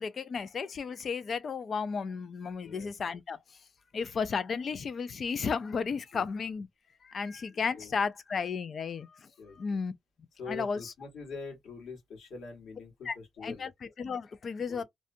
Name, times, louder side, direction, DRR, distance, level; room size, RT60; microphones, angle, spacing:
voice 1, 0.0-3.4 3.9-6.7 7.1-9.1 9.6-9.9 10.5-10.9 13.1-14.8, left 5 dB, 35° left, 0.3 m, -33 dB
voice 2, 9.4-9.8 10.4-13.7 14.7-14.8, left 4 dB, 60° left, 1.3 m, -44 dB
2.6 x 2.1 x 2.5 m
cardioid pair, 160°, 0 cm